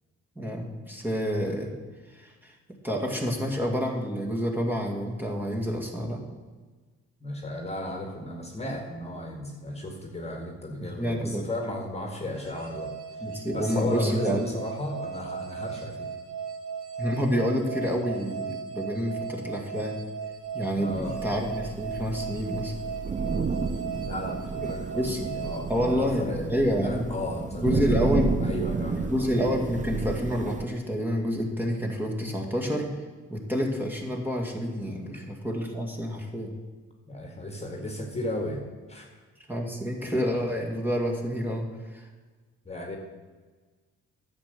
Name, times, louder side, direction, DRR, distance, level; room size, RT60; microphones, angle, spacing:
voice 1, 0.4-1.7 2.1-2.5 2.8-6.2 10.8-11.5 13.2-14.6 17.0-20.0 20.5-22.7 25.0-25.3 25.7-27.1 27.6-28.3 29.0-32.9 33.3-36.5 39.5-41.7 41.9-42.1, equal, 5° right, -1 dB, 2.1 m, -28 dB
voice 2, 7.2-16.1 20.8-21.2 24.0-26.5 26.8-28.1 28.4-29.3 37.1-39.1 42.7-43.0, left 1 dB, 20° left, 2 dB, 1.9 m, -35 dB
sound 1, 12.4-26.8, right 6 dB, 85° right, 1.8 m, -37 dB
Thunder / Rain, 20.9-30.7, right 4 dB, 25° right, 0.6 m, -31 dB
10.5 x 7.4 x 6.8 m, 1.4 s
cardioid pair, 90°, 30 cm